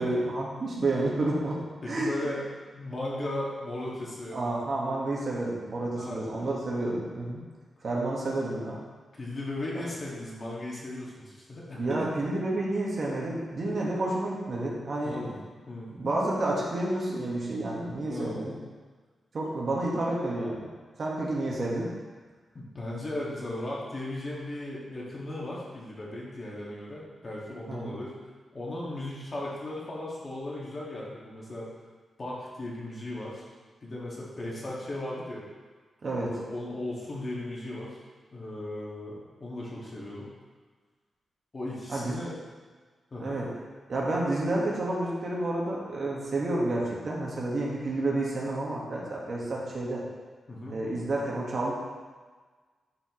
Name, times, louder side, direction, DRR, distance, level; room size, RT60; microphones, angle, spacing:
voice 1, 0.0-2.1 4.3-7.4 7.8-8.8 11.8-15.4 15.9-18.5 19.3-20.7 21.0-21.9 27.7-28.0 36.0-36.3 41.9-42.2 43.2-43.5 43.9-50.0 50.7-51.7, right 2 dB, 50° right, -4 dB, 1.8 m, -30 dB
voice 2, 1.8-2.4 2.7-4.4 5.9-6.2 9.1-12.1 15.0-15.4 15.7-15.9 18.1-18.4 22.5-28.2 28.5-31.7 32.2-33.4 33.8-35.5 36.2-38.0 38.3-40.3 41.5-42.3 43.1-43.4 50.5-50.8, left 1 dB, 35° left, -5 dB, 2.0 m, -36 dB
11.0 x 4.9 x 3.2 m, 1.4 s
wide cardioid pair, 110°, 0 cm